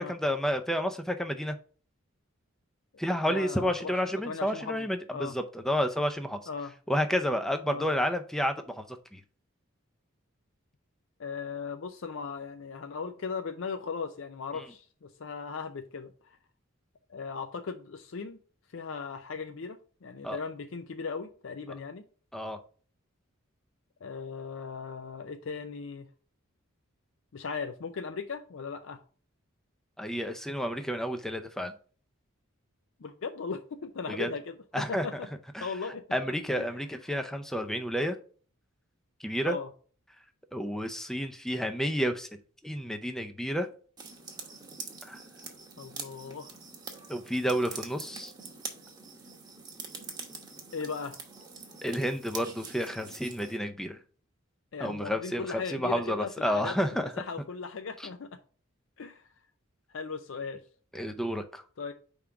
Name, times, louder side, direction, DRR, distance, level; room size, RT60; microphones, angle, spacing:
voice 1, 0.0-1.6 3.0-6.4 6.9-8.8 9.1-9.2 14.5-14.6 20.2-20.4 22.3-22.6 30.0-31.7 34.1-34.3 34.7-35.1 35.5-35.7 36.1-38.2 39.2-39.6 40.5-42.3 42.6-43.7 45.1-45.2 47.1-48.3 51.8-54.0 54.8-57.1 58.0-58.1 60.9-61.6, equal, ahead, 0.5 m, -30 dB
voice 2, 3.1-4.0 4.3-5.4 6.5-6.7 7.7-7.9 11.2-16.1 17.1-18.4 18.7-22.0 24.0-26.1 27.3-29.0 33.0-35.3 35.6-36.7 39.4-39.7 45.8-46.5 50.7-51.2 54.7-58.4 59.0-59.2 59.9-60.6 61.8-61.9, left 5 dB, 65° left, 0.5 m, -38 dB
sound 1, 44.0-53.6, right 4 dB, 20° right, 1.0 m, -44 dB
5.0 x 3.6 x 5.6 m
head